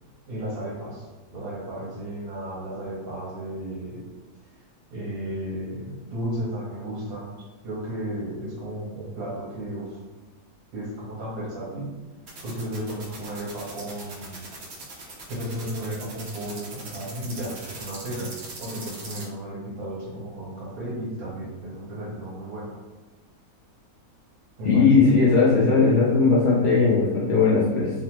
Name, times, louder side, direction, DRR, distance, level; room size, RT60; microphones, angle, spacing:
voice 1, 0.3-4.1 4.9-7.3 7.6-10.0 10.7-11.9 12.4-14.5 15.3-22.7 24.6-25.1 25.5-25.8, right 1 dB, 80° right, -7 dB, 1.6 m, -34 dB
sound 1, 12.3-19.2, right 3 dB, 60° right, 0.8 m, -40 dB
voice 2, 24.6-27.9, left 4 dB, 80° left, -7 dB, 0.4 m, -18 dB
3.2 x 2.0 x 3.1 m, 1.2 s
omnidirectional pair, 1.6 m